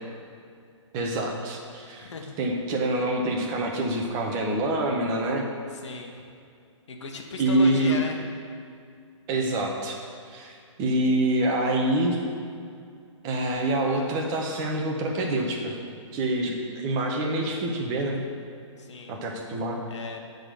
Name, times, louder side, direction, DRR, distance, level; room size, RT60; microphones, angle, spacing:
voice 1, 0.9-2.1 2.4-5.5 7.4-8.0 9.3-10.0 10.3-12.2 13.2-15.7 16.1-18.2 19.1-19.8, right 1 dB, 20° right, 0 dB, 1.1 m, -26 dB
voice 2, 2.0-2.4 5.7-6.2 6.9-8.2 18.8-19.1 19.9-20.2, left 4 dB, 65° left, 2 dB, 1.3 m, -36 dB
9.7 x 4.0 x 6.7 m, 2.3 s
hypercardioid pair, 155°, 16 cm